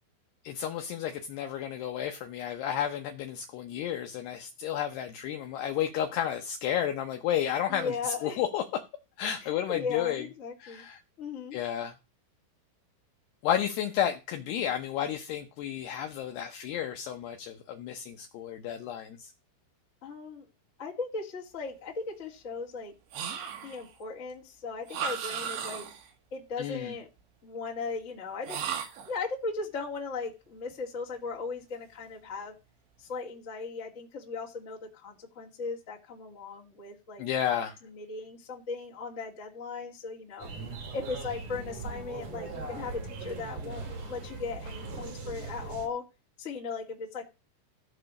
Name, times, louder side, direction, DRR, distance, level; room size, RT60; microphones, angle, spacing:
voice 1, 0.4-7.9 8.2-8.8 9.2-10.2 10.6-11.0 11.5-11.9 13.4-19.3 26.6-26.9 37.2-37.7, left 10 dB, 75° left, 2.5 m, -32 dB
voice 2, 7.7-8.4 9.4-10.8 11.2-11.6 20.0-20.5 20.8-22.9 23.6-25.8 26.3-27.1 27.4-28.6 29.0-32.5 33.0-40.5 40.9-46.0 46.4-47.3, left 4 dB, 30° left, 1.5 m, -37 dB
sound 1, 23.1-23.9 24.9-26.1 28.4-29.2, right 7 dB, 70° right, 3.3 m, -35 dB
sound 2, 40.4-45.9, right 3 dB, 50° right, 2.4 m, -39 dB
14.5 x 4.9 x 6.4 m
omnidirectional pair, 5.6 m